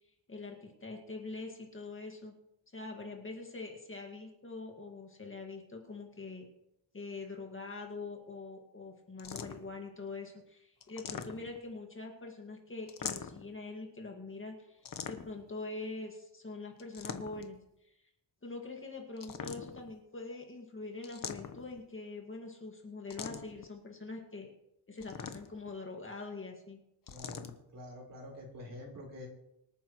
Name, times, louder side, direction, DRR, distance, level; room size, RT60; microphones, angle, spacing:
voice 1, 0.3-2.3 2.7-6.5 6.9-17.6 18.4-24.5 24.9-26.8, left 3 dB, 25° left, 1 dB, 2.0 m, -44 dB
sound 1, 9.2-9.8 10.8-11.7 12.9-13.5 14.8-15.5 16.8-17.6 19.2-19.9 21.0-21.8 23.1-23.6 25.0-25.7 27.1-27.5, left 7 dB, 45° left, 1.0 m, -42 dB
voice 2, 27.1-29.3, left 1 dB, 45° right, -1 dB, 4.3 m, -47 dB
25.5 x 9.1 x 3.1 m, 0.84 s
wide cardioid pair, 145°, 45 cm